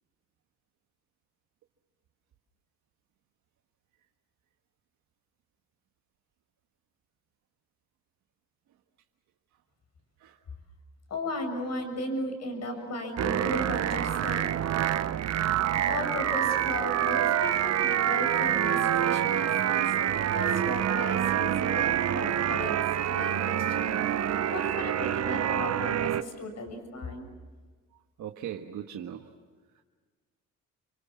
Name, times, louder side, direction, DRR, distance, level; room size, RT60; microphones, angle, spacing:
voice 1, 11.1-14.6 15.9-22.8 23.0-23.9 24.4-27.3, left 1 dB, 60° left, 6 dB, 7.1 m, -36 dB
sound 1, 13.2-26.2, right 10 dB, 60° right, 1.0 m, -27 dB
voice 2, 28.2-29.3 29.7-29.8, right 10 dB, 75° right, 3 dB, 1.5 m, -39 dB
29.5 x 25.0 x 7.3 m, 1.4 s
cardioid pair, 90°, 30 cm